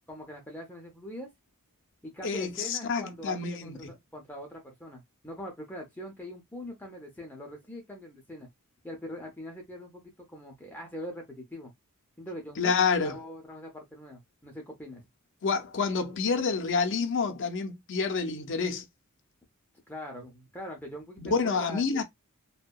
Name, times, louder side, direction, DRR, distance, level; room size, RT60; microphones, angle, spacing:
voice 1, 0.1-1.3 2.0-8.5 8.8-10.0 10.3-11.7 12.2-12.7 13.0-15.0 19.9-22.0, left 1 dB, 10° left, 0.6 m, -42 dB
voice 2, 2.2-3.9 12.6-13.2 15.4-18.8 21.2-22.0, left 5 dB, 60° left, 0.5 m, -28 dB
2.6 x 2.1 x 2.2 m
head